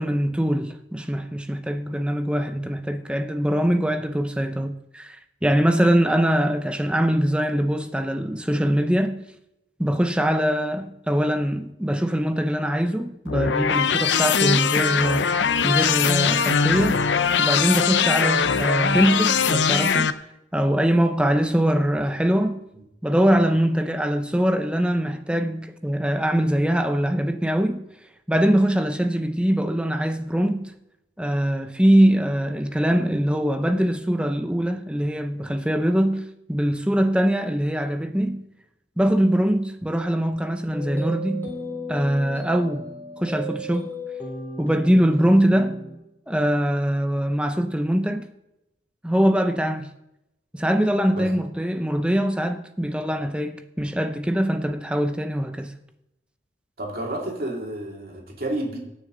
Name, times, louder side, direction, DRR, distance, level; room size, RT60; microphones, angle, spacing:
voice 1, 0.0-9.2 9.8-15.3 15.6-17.0 17.4-20.1 20.5-22.6 23.0-27.8 28.3-30.7 31.2-38.4 39.0-41.5 41.9-42.9 43.2-43.9 44.6-45.8 46.3-48.3 49.0-49.9 50.5-55.7, equal, 5° right, 0.7 m, -22 dB
sound 1, 13.3-20.1, left 6 dB, 85° left, 0.6 m, -21 dB
sound 2, 40.7-46.0, equal, 10° left, 3.7 m, -34 dB
voice 2, 56.8-58.8, right 1 dB, 55° right, 2.7 m, -30 dB
17.5 x 6.5 x 3.9 m
head